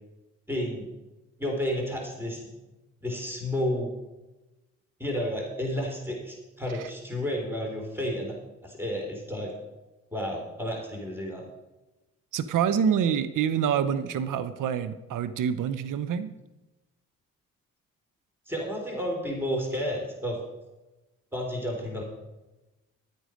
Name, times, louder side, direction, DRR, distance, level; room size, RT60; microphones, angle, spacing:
voice 1, 0.5-0.9 1.4-2.5 3.0-3.9 5.0-8.4 8.6-9.5 10.1-11.4 18.5-20.4 21.3-22.0, equal, 5° right, 0 dB, 3.7 m, -31 dB
voice 2, 12.3-16.3, right 8 dB, 60° right, 13 dB, 0.8 m, -26 dB
11.5 x 9.1 x 5.1 m, 1.1 s
hypercardioid pair, 45°, 37 cm